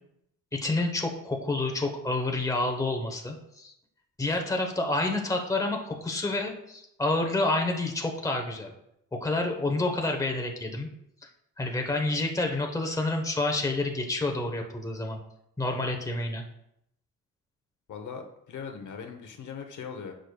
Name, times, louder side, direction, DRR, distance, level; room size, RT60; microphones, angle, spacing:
voice 1, 0.5-3.7 4.2-8.7 9.1-10.9 11.6-15.2 15.6-16.4, left 2 dB, 10° left, 3 dB, 1.0 m, -29 dB
voice 2, 17.9-20.1, left 6 dB, 60° left, 5 dB, 0.9 m, -40 dB
10.0 x 6.3 x 2.3 m, 0.79 s
cardioid pair, 115°, 35 cm